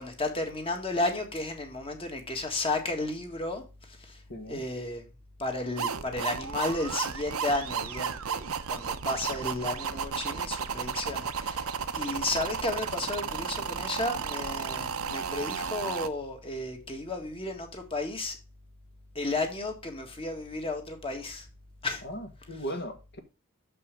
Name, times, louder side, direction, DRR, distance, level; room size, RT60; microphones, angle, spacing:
voice 1, 0.0-4.2 4.5-5.0 5.4-18.4 19.1-21.5 21.8-22.0, left 2 dB, 25° left, 1.7 m, -33 dB
voice 2, 4.3-4.6 9.4-9.5 22.0-23.2, equal, 55° left, 1.5 m, -38 dB
sound 1, 5.8-16.1, right 6 dB, 85° right, 0.7 m, -33 dB
7.0 x 5.5 x 5.2 m
head